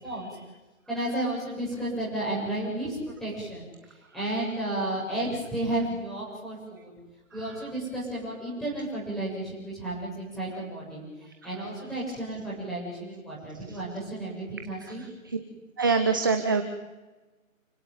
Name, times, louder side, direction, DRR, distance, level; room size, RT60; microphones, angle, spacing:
voice 1, 0.9-6.9 7.3-11.0 11.4-15.0, right 1 dB, ahead, -7 dB, 7.5 m, -32 dB
voice 2, 15.8-16.6, right 4 dB, 15° right, 7 dB, 0.8 m, -23 dB
29.0 x 17.0 x 9.6 m, 1.2 s
figure-of-eight pair, 155°, 41 cm